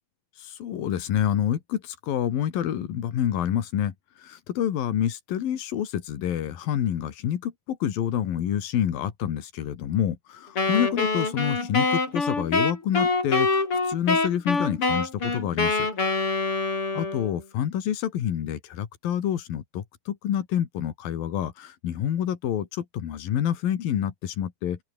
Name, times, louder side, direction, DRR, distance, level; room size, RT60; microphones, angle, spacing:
voice 1, 0.4-15.9 16.9-24.8, left 10 dB, 80° left, 3.9 m, -28 dB
Wind instrument woodwind instrument, 10.6-17.4, left 3 dB, 35° left, 6.5 m, -25 dB
open air
omnidirectional pair, 4.1 m